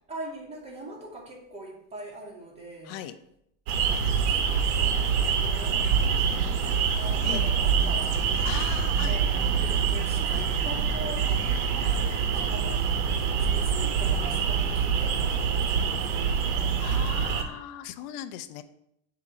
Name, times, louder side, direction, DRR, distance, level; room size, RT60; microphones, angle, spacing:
voice 1, 0.1-3.0 3.9-8.3 9.1-16.8, right 1 dB, 15° right, -3 dB, 2.0 m, -43 dB
voice 2, 2.8-3.2 4.8-4.9 7.2-7.5 8.4-9.2 10.3-10.5 16.8-18.6, left 11 dB, 60° left, 10 dB, 0.7 m, -38 dB
sound 1, 3.7-17.4, right 6 dB, 75° right, 1.1 m, -25 dB
7.5 x 2.9 x 6.1 m, 0.77 s
supercardioid pair, 135°, 45 cm